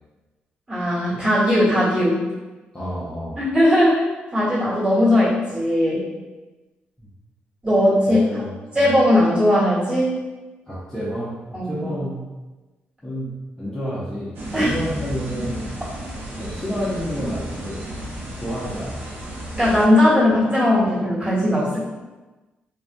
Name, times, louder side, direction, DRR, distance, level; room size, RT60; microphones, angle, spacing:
voice 1, 0.7-2.2 3.4-4.0 4.3-6.1 7.6-8.3 8.7-10.1 11.5-11.9 14.5-14.7 19.5-21.8, left 1 dB, 25° right, -9 dB, 1.4 m, -18 dB
voice 2, 2.7-3.4 7.0-7.1 8.1-8.9 10.7-12.2 13.0-13.3 13.6-15.7 16.4-17.8 18.4-19.0, equal, 15° left, -9 dB, 0.6 m, -29 dB
sound 1, 14.3-19.9, right 1 dB, 75° right, 0.5 m, -33 dB
2.3 x 2.2 x 2.5 m, 1.2 s
cardioid pair, 90°, 4 cm